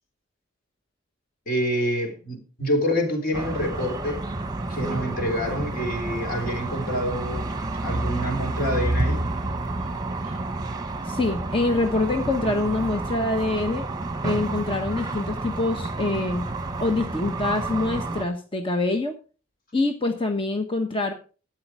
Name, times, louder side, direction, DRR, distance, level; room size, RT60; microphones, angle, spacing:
voice 1, 1.5-4.2 4.7-7.5 7.8-9.2 10.2-10.4, equal, 45° left, 3.8 m, -27 dB
sound 1, 3.3-18.2, right 2 dB, 20° right, 1.1 m, -29 dB
voice 2, 11.0-13.9 14.2-16.5 16.8-19.2 19.7-21.1, left 2 dB, 25° left, 1.2 m, -25 dB
12.5 x 9.2 x 4.7 m
head